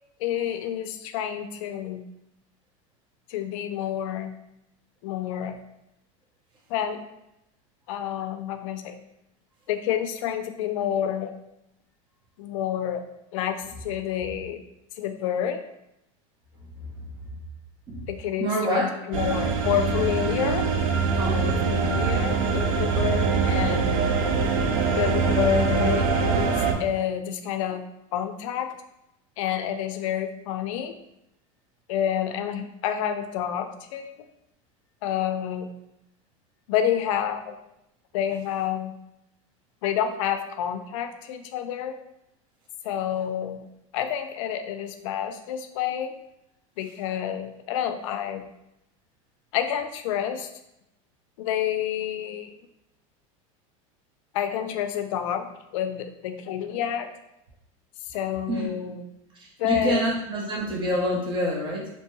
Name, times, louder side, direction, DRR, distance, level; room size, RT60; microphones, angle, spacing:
voice 1, 0.2-2.0 3.3-4.3 5.0-5.6 6.7-7.0 7.9-8.9 9.7-11.3 12.4-13.0 13.3-14.6 15.0-15.6 18.1-20.6 21.3-24.0 25.0-26.5 26.8-27.8 28.1-28.7 29.4-30.9 31.9-34.1 35.0-35.7 36.7-37.5 38.1-38.9 39.8-42.0 42.8-43.7 43.9-46.1 46.8-48.4 49.5-50.5 51.4-52.6 54.3-55.5 55.7-57.1 58.0-59.0 59.6-60.0, left 9 dB, 75° left, 8 dB, 0.4 m, -28 dB
voice 2, 18.4-18.9 21.2-21.8 58.5-58.7 59.6-61.9, right 1 dB, 30° right, -3 dB, 0.8 m, -27 dB
sound 1, 19.1-26.7, right 5 dB, 80° right, 0.4 m, -23 dB
2.7 x 2.2 x 3.0 m, 0.85 s
supercardioid pair, 125°, 17 cm